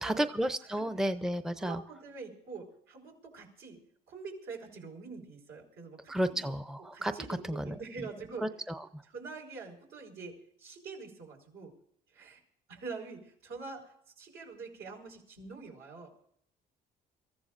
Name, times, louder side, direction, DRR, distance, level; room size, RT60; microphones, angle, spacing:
voice 1, 0.0-1.8 6.1-7.2 7.5-7.8 8.4-9.0, right 1 dB, 5° right, 10 dB, 0.6 m, -32 dB
voice 2, 1.6-3.8 4.1-6.5 6.9-8.5 9.1-11.7 12.1-12.4 12.7-16.1, right 4 dB, 80° right, 0 dB, 4.7 m, -45 dB
27.0 x 14.5 x 2.6 m, 0.65 s
cardioid pair, 110°, 17 cm